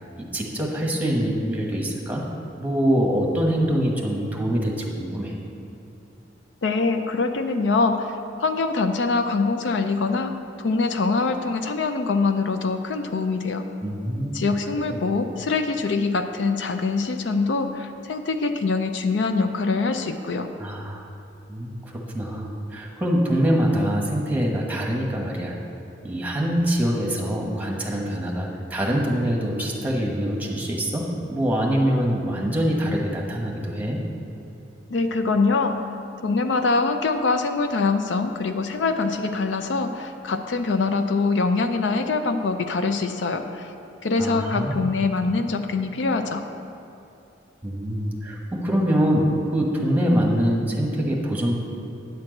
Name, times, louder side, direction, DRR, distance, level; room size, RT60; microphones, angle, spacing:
voice 1, 0.2-2.2 2.6-5.3 13.8-14.4 14.8-15.0 20.6-21.0 21.5-25.5 26.0-34.0 44.2-44.8 47.6-51.5, equal, 10° right, -2 dB, 1.2 m, -24 dB
voice 2, 6.6-8.1 8.4-13.7 14.3-20.5 34.9-35.8 36.2-43.7 44.0-46.4, left 3 dB, 70° left, 7 dB, 0.5 m, -24 dB
9.5 x 4.5 x 7.7 m, 2.9 s
head